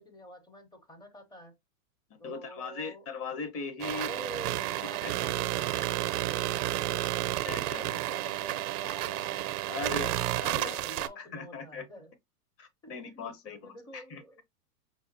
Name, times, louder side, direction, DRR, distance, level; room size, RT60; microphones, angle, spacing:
voice 1, 0.0-1.6 2.2-3.1 3.9-7.3 7.8-9.6 9.8-10.2 10.5-12.1 12.8-14.4, equal, 10° left, 0.5 m, -47 dB
voice 2, 2.1-4.1 5.0-5.1 5.7-5.8 7.4-7.8 9.7-10.1 10.4-10.9 11.2-11.8 12.6-13.6 13.9-14.2, left 4 dB, 30° left, 0.9 m, -39 dB
sound 1, 3.8-11.1, right 15 dB, 85° right, 0.5 m, -31 dB
4.9 x 2.3 x 2.6 m
supercardioid pair, 135°, 45 cm